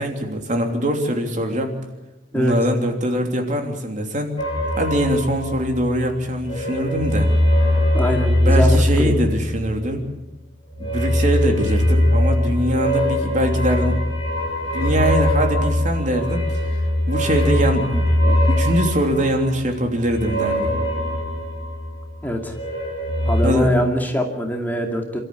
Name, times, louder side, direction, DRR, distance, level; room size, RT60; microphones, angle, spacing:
voice 1, 0.0-1.7 2.3-4.3 4.8-7.3 8.4-10.0 10.8-14.0 14.7-16.8 17.1-20.7 23.4-23.7, equal, 45° right, 3 dB, 3.2 m, -22 dB
sound 1, 4.4-6.0 6.3-9.9 10.7-22.1 22.4-23.4, left 1 dB, 30° left, 7.0 m, -21 dB
voice 2, 7.9-9.1 22.2-22.6 23.3-25.2, equal, 10° left, 2 dB, 2.5 m, -23 dB
27.5 x 13.5 x 8.5 m, 0.99 s
head